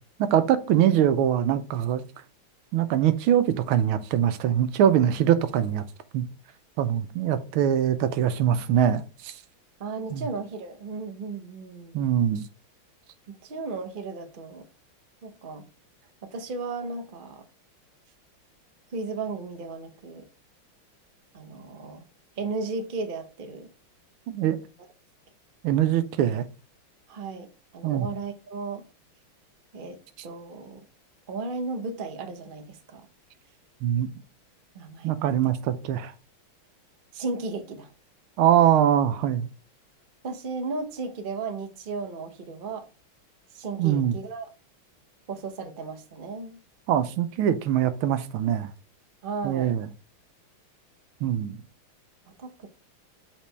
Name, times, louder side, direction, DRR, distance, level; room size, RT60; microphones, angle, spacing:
voice 1, 0.2-2.0 2.7-5.8 6.1-6.2 6.8-9.3 10.1-10.2 11.9-12.4 24.3-24.6 25.6-26.5 27.8-28.1 33.8-34.1 35.0-36.1 38.4-39.5 43.8-44.2 46.9-48.7 49.4-49.9 51.2-51.6, right 10 dB, 85° right, 1.5 m, -23 dB
voice 2, 9.8-12.0 13.3-14.6 15.2-15.7 16.3-17.4 18.9-20.2 21.3-22.0 22.4-23.7 24.8-24.9 27.1-27.5 27.7-28.8 29.7-30.0 30.2-30.8 31.3-33.1 34.7-35.1 37.1-37.9 40.2-42.8 43.5-44.5 45.3-46.6 49.2-49.8 52.4-52.7, right 3 dB, 45° right, 0.6 m, -35 dB
7.4 x 4.1 x 3.3 m
omnidirectional pair, 2.3 m